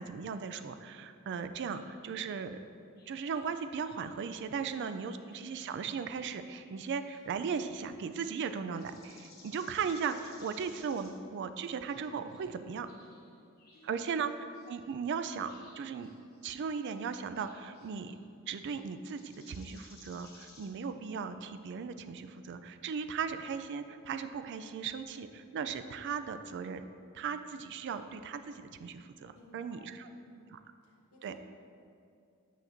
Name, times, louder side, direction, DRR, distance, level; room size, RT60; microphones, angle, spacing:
voice 1, 0.0-2.6 3.1-12.9 13.8-14.3 14.7-16.1 16.4-18.2 18.5-26.8 27.1-30.1 30.5-30.6 31.2-31.3, right 6 dB, 55° right, 10 dB, 0.3 m, -37 dB
sound 1, 1.5-2.0 3.0-5.6 6.0-7.5 8.2-8.4 8.7-11.2 11.9-13.9 14.5-14.7 15.1-16.5 17.0-18.2 18.6-18.8 19.1-20.7, left 3 dB, 45° left, 1.1 m, -60 dB
voice 2, 4.7-5.1 13.7-14.2 29.3-30.5 30.8-31.3, left 1 dB, 70° left, -2 dB, 1.1 m, -58 dB
8.2 x 5.9 x 2.6 m, 2.4 s
head